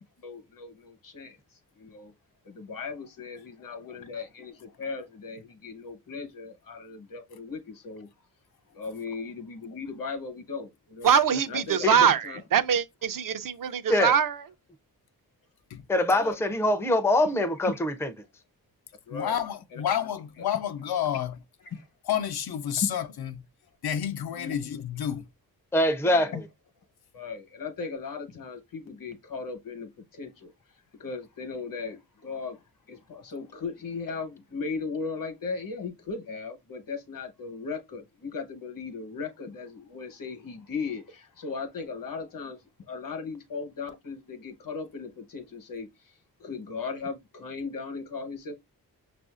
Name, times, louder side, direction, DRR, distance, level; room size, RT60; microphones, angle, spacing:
voice 1, 0.2-1.4 1.7-2.1 2.4-8.1 8.7-11.1 11.5-11.9 12.2-12.4 16.1-16.3 17.6-17.8 19.1-19.4 19.7-19.8 21.7-21.9 22.8-22.9 24.3-24.5 26.0-26.4 27.1-30.5 31.0-32.6 32.9-42.6 42.9-46.1 46.4-48.6, left 4 dB, 65° left, 1.0 m, -37 dB
voice 2, 11.0-14.4, right 7 dB, 60° right, 0.5 m, -23 dB
voice 3, 15.9-18.1 25.7-26.4, left 1 dB, 5° left, 0.4 m, -23 dB
voice 4, 19.1-21.4 22.1-23.4 23.8-25.3, left 9 dB, 85° left, 0.6 m, -30 dB
6.1 x 2.5 x 2.4 m
wide cardioid pair, 130°, 37 cm